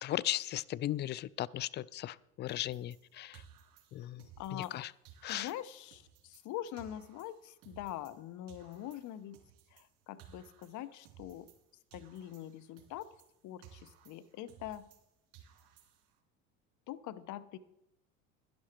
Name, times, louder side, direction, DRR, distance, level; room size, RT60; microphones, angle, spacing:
voice 1, 0.0-3.4 3.9-4.2 4.5-4.9 5.2-5.5, left 13 dB, 30° left, 19 dB, 0.4 m, -37 dB
sound 1, 2.5-4.8 5.1-8.2 8.5-11.7 11.9-15.1 15.3-16.2, right 9 dB, 55° right, 3.2 m, -59 dB
voice 2, 4.4-4.7 5.3-9.4 9.7-11.5 11.9-13.1 13.4-14.9 16.9-17.6, left 12 dB, 50° left, 14 dB, 0.9 m, -44 dB
11.5 x 11.0 x 4.4 m, 0.86 s
hypercardioid pair, 90°, 40 cm